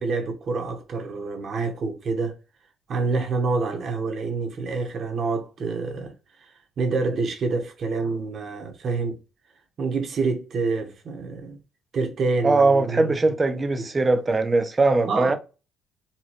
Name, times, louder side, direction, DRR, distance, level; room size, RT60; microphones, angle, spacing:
voice 1, 0.0-2.4 2.9-6.1 6.8-9.2 9.8-11.6 11.9-13.2 15.1-15.4, right 4 dB, 40° right, 0.8 m, -27 dB
voice 2, 12.4-15.4, right 3 dB, 15° right, 0.4 m, -20 dB
4.0 x 2.2 x 2.9 m
cardioid pair, 170°, 0 cm